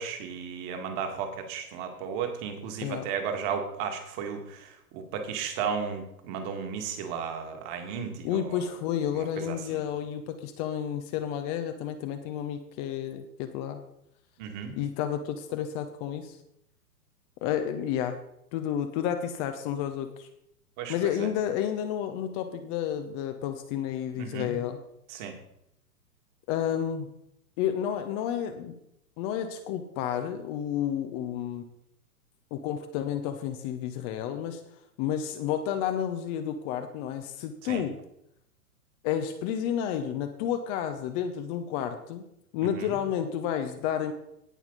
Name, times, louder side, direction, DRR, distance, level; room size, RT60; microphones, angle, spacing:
voice 1, 0.0-8.7 9.1-9.8 14.4-14.7 20.8-20.9 21.2-21.3 24.1-24.6 25.1-25.3 37.6-37.8 42.8-43.0, right 6 dB, 35° right, 5 dB, 2.1 m, -34 dB
voice 2, 8.2-13.8 14.7-16.4 17.4-18.2 18.5-20.3 20.9-24.8 26.5-27.1 27.6-28.8 29.2-31.6 32.5-34.6 35.0-38.0 39.0-42.2 42.5-44.1, left 9 dB, 25° left, 7 dB, 0.7 m, -31 dB
17.5 x 5.8 x 4.0 m, 0.78 s
figure-of-eight pair, 115°, 46 cm